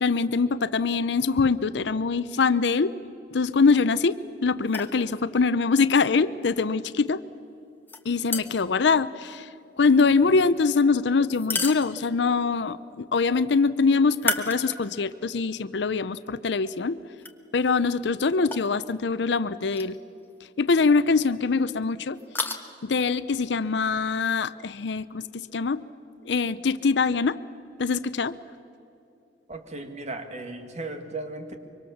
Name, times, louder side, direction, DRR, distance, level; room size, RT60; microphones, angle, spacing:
voice 1, 0.0-2.9 3.3-7.2 8.1-9.5 9.8-17.0 17.5-20.0 20.6-22.2 22.8-25.8 26.3-27.4 27.8-28.4, left 4 dB, 70° left, 15 dB, 0.6 m, -23 dB
sound 1, 4.6-5.0 7.9-8.8 11.3-12.3 14.1-15.1 15.6-15.7 17.2-17.3 18.5-18.7 19.7-19.9 20.2-20.3 22.2-22.6, left 3 dB, 10° left, 1.3 m, -32 dB
voice 2, 29.5-31.6, right 2 dB, 40° right, 6 dB, 2.0 m, -36 dB
24.5 x 24.0 x 7.2 m, 2.8 s
head